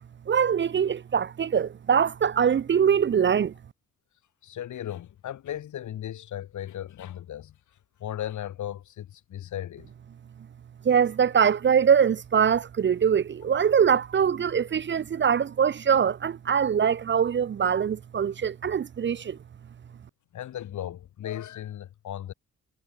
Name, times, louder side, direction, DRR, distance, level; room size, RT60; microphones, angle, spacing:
voice 1, 0.3-3.5 10.8-19.4, right 7 dB, 40° right, 0.6 m, -23 dB
voice 2, 4.4-7.5 8.0-9.9 20.3-22.3, left 11 dB, 70° left, 2.1 m, -36 dB
cardioid pair, 85°, 30 cm